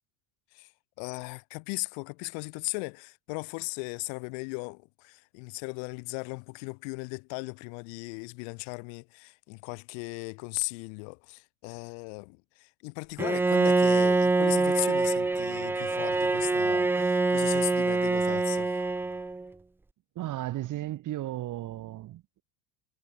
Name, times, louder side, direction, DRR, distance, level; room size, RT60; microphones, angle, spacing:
voice 1, 1.0-18.8, left 40 dB or more, 75° left, 2.5 m, -37 dB
Bowed string instrument, 13.2-19.5, right 3 dB, 5° right, 0.3 m, -25 dB
voice 2, 20.1-22.4, right 15 dB, 40° right, 1.3 m, -35 dB
cardioid pair, 155°, 50 cm